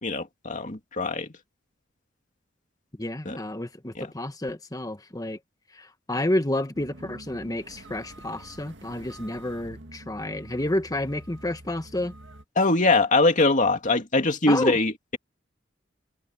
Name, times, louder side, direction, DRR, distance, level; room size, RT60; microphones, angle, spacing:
voice 1, 0.0-1.3 3.2-3.4 3.9-4.1 12.6-15.2, left 2 dB, 40° left, 2.5 m, -22 dB
voice 2, 3.0-5.4 5.7-12.1 14.5-14.8, left 1 dB, 20° left, 1.6 m, -30 dB
sound 1, 6.7-12.4, right 1 dB, 65° right, 2.1 m, -46 dB
head